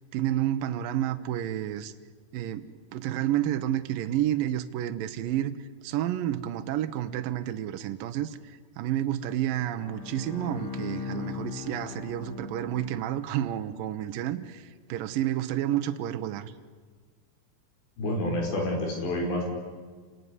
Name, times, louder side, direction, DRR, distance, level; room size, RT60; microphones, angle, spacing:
voice 1, 0.1-1.9 2.3-16.5, right 12 dB, 75° right, 8 dB, 2.2 m, -30 dB
Bowed string instrument, 9.8-13.3, left 5 dB, 35° left, 3.0 m, -38 dB
voice 2, 18.0-19.4, left 1 dB, 85° left, 0 dB, 7.4 m, -28 dB
28.5 x 19.5 x 9.7 m, 1.5 s
omnidirectional pair, 4.9 m